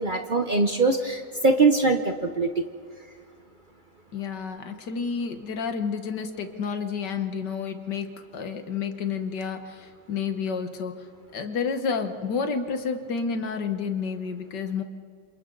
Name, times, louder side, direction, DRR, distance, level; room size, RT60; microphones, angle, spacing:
voice 1, 0.0-2.6, right 3 dB, 40° right, 5 dB, 0.7 m, -22 dB
voice 2, 4.1-8.1 8.3-11.1 11.3-14.8, left 5 dB, 60° left, 7 dB, 1.9 m, -30 dB
28.0 x 27.0 x 4.0 m, 2.2 s
omnidirectional pair, 2.1 m